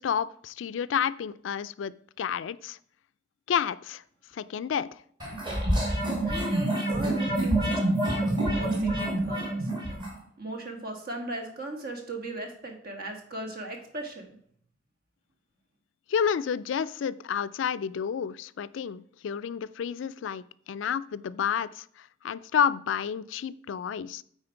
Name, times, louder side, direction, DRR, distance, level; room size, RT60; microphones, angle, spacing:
voice 1, 0.0-2.8 3.5-4.0 4.4-5.0 16.1-21.8 22.2-24.2, left 7 dB, 70° left, 0.4 m, -30 dB
sound 1, 5.2-10.1, right 1 dB, 25° right, 2.3 m, -27 dB
voice 2, 6.2-9.7 10.4-14.3, right 2 dB, 55° right, 1.6 m, -37 dB
8.7 x 4.4 x 4.5 m
head